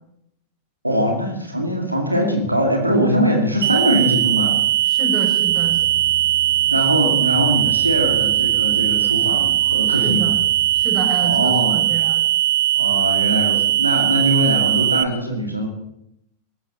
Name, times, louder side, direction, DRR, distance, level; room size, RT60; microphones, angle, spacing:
voice 1, 0.8-4.6 6.7-10.3 11.2-11.8 12.7-15.7, equal, 85° right, 2 dB, 2.5 m, -21 dB
sound 1, 3.6-15.0, right 14 dB, 60° right, 1.1 m, -19 dB
voice 2, 4.9-5.8 10.0-10.4 10.8-12.2, right 3 dB, 20° right, 1 dB, 5.7 m, -28 dB
sound 2, 5.4-10.9, left 6 dB, 65° left, 3.8 m, -39 dB
18.5 x 15.0 x 4.2 m, 0.78 s
figure-of-eight pair, 90°, 0 cm